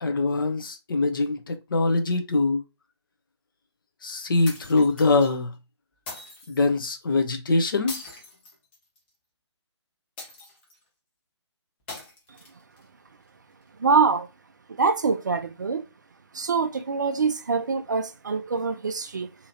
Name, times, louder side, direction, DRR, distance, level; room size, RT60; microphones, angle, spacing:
voice 1, 0.0-2.6 4.0-5.5 6.5-8.0, left 3 dB, 45° left, 0.7 m, -23 dB
sound 1, 4.4-5.3 6.1-6.6 7.9-9.1 10.2-10.8 11.9-12.8, left 2 dB, 20° left, 1.0 m, -41 dB
voice 2, 13.8-14.3 14.8-15.8 16.3-19.4, right 5 dB, 40° right, 0.4 m, -24 dB
2.8 x 2.8 x 2.8 m
figure-of-eight pair, 150°, 15 cm